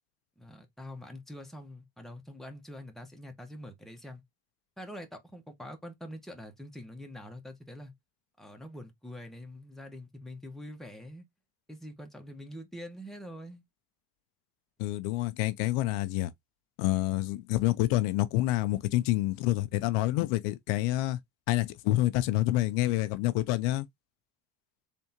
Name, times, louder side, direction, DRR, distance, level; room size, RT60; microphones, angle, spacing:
voice 1, 0.4-4.2 4.8-7.9 8.4-11.2 11.7-13.6, equal, ahead, 1.1 m, -45 dB
voice 2, 14.8-16.3 16.8-21.2 21.5-23.9, left 16 dB, 85° left, 0.6 m, -27 dB
3.5 x 3.4 x 2.8 m
cardioid pair, 110°, 40 cm